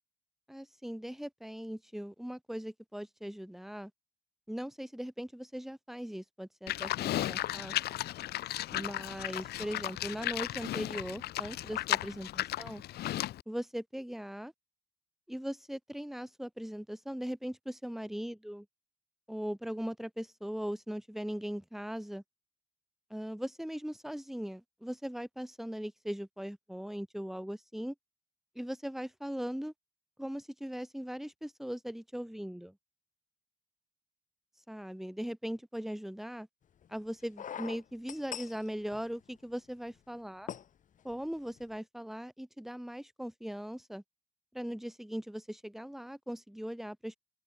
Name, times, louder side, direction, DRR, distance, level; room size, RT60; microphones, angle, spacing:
voice 1, 0.5-3.9 4.5-8.0 8.7-12.8 13.5-14.5 15.3-18.7 19.3-22.2 23.1-27.9 28.6-29.7 30.2-32.8 34.7-36.5 36.9-40.5 41.0-44.0 44.5-47.2, equal, ahead, 5.6 m, -39 dB
Livestock farm animals working animals, 6.7-13.4, left 14 dB, 70° left, 6.5 m, -35 dB
sound 1, 36.8-36.9 37.4-39.5 39.9-40.0 40.5-40.7 41.1-41.3 41.5-41.6, left 9 dB, 50° left, 4.0 m, -42 dB
open air
cardioid pair, 110°, 17 cm